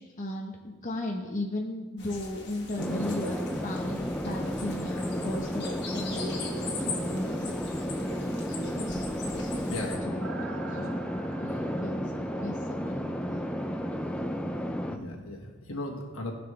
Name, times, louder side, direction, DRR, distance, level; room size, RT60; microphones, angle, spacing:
voice 1, 0.0-7.5 8.5-11.0 11.4-13.5, left 1 dB, 35° left, 0 dB, 0.9 m, -37 dB
sound 1, 2.0-10.0, left 4 dB, 55° left, 1.6 m, -41 dB
sound 2, 2.8-15.0, equal, 5° left, 0.4 m, -33 dB
sound 3, 6.1-14.0 14.3-14.4, right 3 dB, 60° right, 0.7 m, -46 dB
voice 2, 10.7-11.2 14.9-16.3, left 2 dB, 75° left, 1 dB, 1.5 m, -38 dB
16.0 x 6.0 x 3.3 m, 1.3 s
head